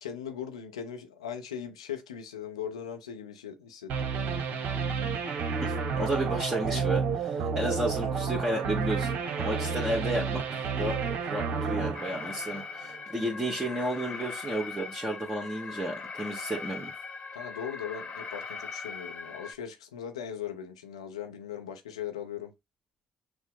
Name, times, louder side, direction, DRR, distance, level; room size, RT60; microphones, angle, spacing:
voice 1, 0.0-4.1 17.3-22.5, left 8 dB, 85° left, 0.6 m, -39 dB
sound 1, 3.9-12.9, right 5 dB, 60° right, 0.7 m, -31 dB
voice 2, 5.6-16.9, right 1 dB, 15° right, 1.4 m, -32 dB
Alarm, 11.9-19.5, left 5 dB, 40° left, 1.1 m, -40 dB
6.0 x 2.0 x 3.6 m
hypercardioid pair, 50°, 3 cm